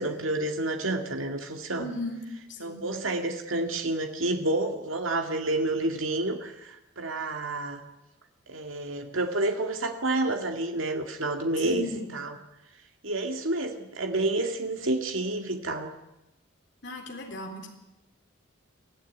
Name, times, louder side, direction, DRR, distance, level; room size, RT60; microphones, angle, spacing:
voice 1, 0.0-1.9 2.6-7.8 8.5-12.4 13.0-15.9, right 2 dB, 75° right, 4 dB, 2.2 m, -29 dB
voice 2, 1.8-2.2 2.5-2.8 11.6-12.1 16.8-17.7, left 1 dB, 60° left, 2 dB, 3.9 m, -36 dB
23.5 x 15.0 x 9.5 m, 0.96 s
head